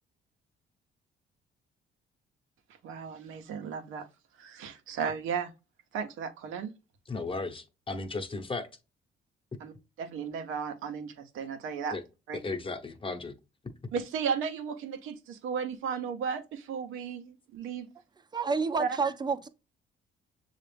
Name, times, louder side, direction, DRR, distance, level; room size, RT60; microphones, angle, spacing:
voice 1, 2.8-4.1 4.4-5.5 5.9-6.7 9.6-9.7 10.0-11.9 12.3-12.4 13.9-17.9 18.8-19.0, right 6 dB, 90° right, 0.8 m, -34 dB
voice 2, 7.1-8.7 11.9-12.0 12.4-13.3, left 3 dB, 25° left, 0.9 m, -35 dB
voice 3, 18.3-19.5, right 4 dB, 20° right, 0.5 m, -29 dB
6.7 x 2.4 x 3.3 m
cardioid pair, 90°, 20 cm